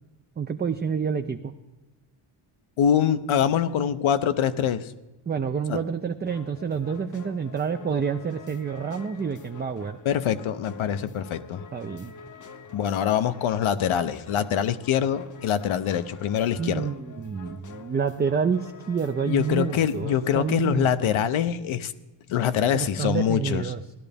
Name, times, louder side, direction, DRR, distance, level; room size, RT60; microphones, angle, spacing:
voice 1, 0.4-1.5 5.3-10.0 11.7-12.1 16.6-21.1 22.7-23.8, right 6 dB, 25° right, 7 dB, 0.3 m, -28 dB
voice 2, 2.8-4.9 5.7-5.8 10.0-11.7 12.7-16.9 19.3-21.9 22.3-23.6, left 9 dB, 85° left, 11 dB, 0.8 m, -24 dB
sound 1, 6.3-20.3, left 5 dB, 40° left, 0.7 m, -46 dB
16.5 x 12.0 x 3.4 m, 1.1 s
wide cardioid pair, 155°, 47 cm